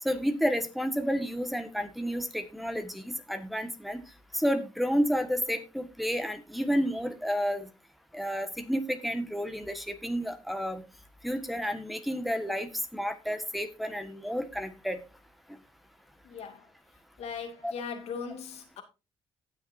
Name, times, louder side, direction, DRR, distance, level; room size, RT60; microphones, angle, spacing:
voice 1, 0.0-4.0 4.3-7.7 8.1-10.8 11.2-15.0 17.6-17.7, equal, ahead, 1.6 m, -31 dB
voice 2, 16.2-16.7 17.2-18.8, left 6 dB, 75° left, 2.4 m, -39 dB
18.5 x 6.5 x 2.7 m
cardioid pair, 85°, 11 cm